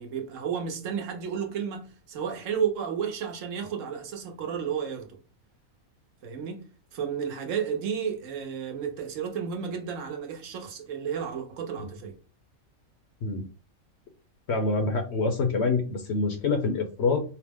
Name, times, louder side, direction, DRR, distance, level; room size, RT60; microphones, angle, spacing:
voice 1, 0.0-5.1 6.2-12.2, right 7 dB, 65° right, 1.2 m, -32 dB
voice 2, 14.5-17.2, left 3 dB, 60° left, 0.9 m, -26 dB
4.9 x 2.0 x 3.5 m
omnidirectional pair, 1.5 m